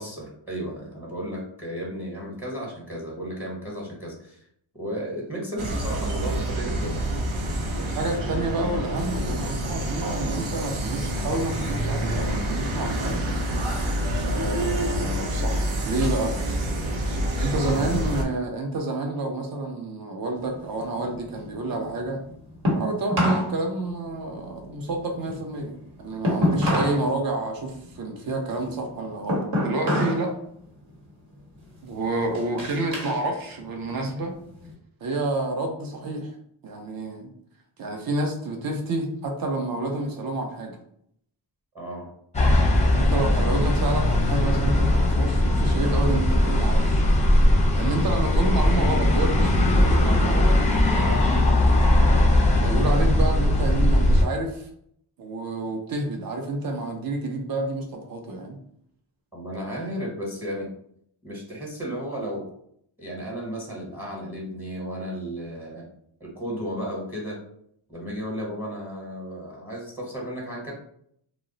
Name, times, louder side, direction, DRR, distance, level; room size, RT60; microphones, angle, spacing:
voice 1, 0.0-4.5 4.7-7.1 17.7-17.9 41.7-42.1 59.3-60.7 61.2-62.5 63.0-65.9 66.2-67.4 67.9-70.7, equal, 5° right, -2 dB, 1.0 m, -34 dB
sound 1, 5.6-18.2, right 1 dB, 80° right, 0.7 m, -27 dB
voice 2, 7.8-13.2 14.2-16.4 17.4-22.2 22.8-30.3 31.8-34.3 35.0-36.3 36.6-37.3 37.8-40.8 42.9-47.0 47.7-50.6 50.9-51.8 52.6-54.7 55.2-58.6, right 2 dB, 45° right, 3 dB, 0.7 m, -29 dB
sound 2, 20.4-23.5 23.8-27.1 27.4-30.3 30.6-31.0 31.6-33.2 33.6-34.7, left 1 dB, 65° right, 1.2 m, -28 dB
sound 3, 42.3-54.2, left 1 dB, 15° left, 0.5 m, -19 dB
2.2 x 2.0 x 3.8 m, 0.69 s
cardioid pair, 80°, 48 cm